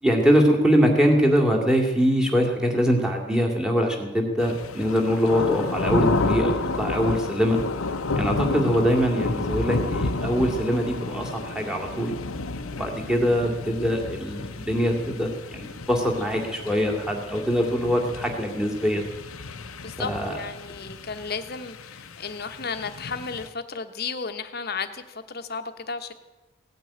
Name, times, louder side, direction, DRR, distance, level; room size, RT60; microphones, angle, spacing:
voice 1, 0.0-7.6 8.2-12.1 12.7-19.0 20.0-20.4, equal, 5° right, 2 dB, 2.3 m, -23 dB
sound 1, 4.4-23.5, left 3 dB, 90° left, 1.0 m, -31 dB
voice 2, 19.8-26.1, left 5 dB, 50° left, 7 dB, 1.1 m, -33 dB
17.0 x 9.3 x 8.6 m, 1.1 s
head